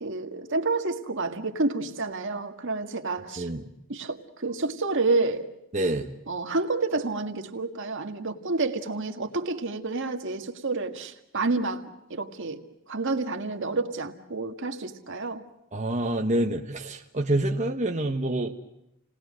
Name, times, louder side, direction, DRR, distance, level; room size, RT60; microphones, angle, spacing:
voice 1, 0.0-3.5 3.9-5.5 6.3-11.9 12.1-12.6 12.9-15.4, right 3 dB, 65° right, 1.9 m, -29 dB
voice 2, 3.4-3.7 5.7-6.1 15.7-18.5, right 1 dB, 35° right, 1.3 m, -27 dB
29.5 x 19.5 x 6.4 m
head